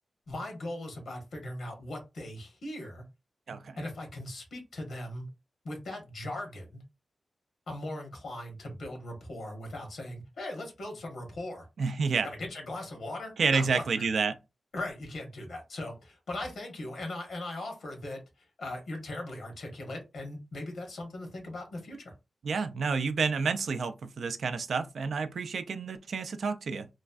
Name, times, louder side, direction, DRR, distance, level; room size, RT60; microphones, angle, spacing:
voice 1, 0.3-3.0 3.8-5.3 5.6-6.8 7.7-11.7 12.2-14.1 14.7-22.1, left 1 dB, 80° left, 1.2 m, -39 dB
voice 2, 11.8-12.3 13.4-14.4 22.4-26.9, right 5 dB, 75° right, 0.3 m, -29 dB
3.0 x 2.4 x 2.4 m
cardioid pair, 65°, 0 cm